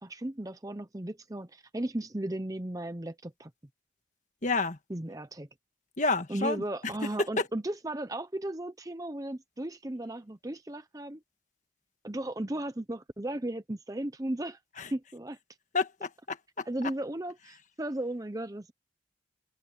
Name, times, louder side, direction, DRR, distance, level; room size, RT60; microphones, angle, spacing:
voice 1, 0.0-3.5 4.9-5.5 6.3-11.2 12.0-14.6 14.9-15.4 16.6-18.7, right 1 dB, 20° right, 0.7 m, -35 dB
voice 2, 4.4-4.8 6.0-6.6 14.8-14.9 15.7-16.6, left 3 dB, 40° left, 1.6 m, -30 dB
open air
head